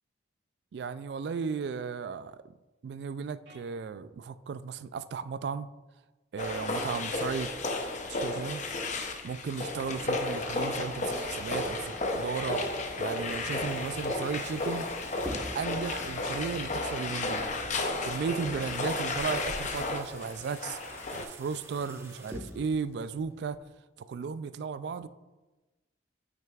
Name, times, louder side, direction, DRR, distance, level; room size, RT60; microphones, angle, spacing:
voice 1, 0.7-2.4 2.8-5.7 6.3-7.5 8.1-8.6 9.2-14.9 15.2-17.5 18.0-20.8 21.1-23.6 24.0-25.1, right 5 dB, 65° right, 0.3 m, -35 dB
sound 1, 3.5-3.6 6.5-6.8 9.6-9.8 12.7-13.0, right 1 dB, 90° right, 2.2 m, -52 dB
sound 2, 6.4-21.2, left 2 dB, 40° left, 0.6 m, -33 dB
sound 3, 13.6-23.6, equal, 15° right, 0.9 m, -47 dB
8.8 x 5.9 x 2.4 m
head